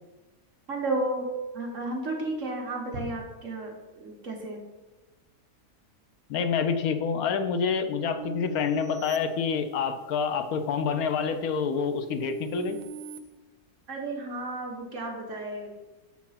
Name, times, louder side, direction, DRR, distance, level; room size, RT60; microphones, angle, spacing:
voice 1, 0.7-1.3 1.5-4.6 13.9-15.7, right 2 dB, 55° right, 0 dB, 1.6 m, -33 dB
voice 2, 6.3-12.8, left 6 dB, 75° left, 9 dB, 1.1 m, -27 dB
sound 1, 8.2-10.1 10.7-13.2, right 8 dB, 85° right, 1.2 m, -44 dB
7.3 x 4.5 x 5.7 m, 1.1 s
omnidirectional pair, 1.6 m